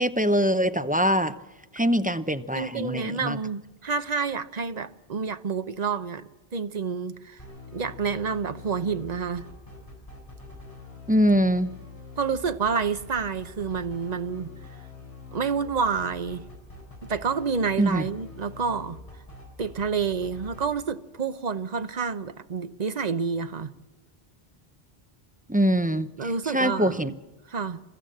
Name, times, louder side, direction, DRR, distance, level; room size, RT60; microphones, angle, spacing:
voice 1, 0.0-1.3 1.7-3.4 11.1-11.7 17.8-18.1 25.5-27.1, equal, 10° right, 0.6 m, -23 dB
voice 2, 2.5-7.4 7.7-9.5 12.2-14.5 15.3-16.4 17.0-19.0 19.6-23.7 26.2-27.1 27.5-27.8, right 5 dB, 45° right, 0.9 m, -29 dB
sound 1, 7.4-20.6, left 4 dB, 35° left, 6.1 m, -44 dB
29.5 x 14.0 x 7.8 m
omnidirectional pair, 1.0 m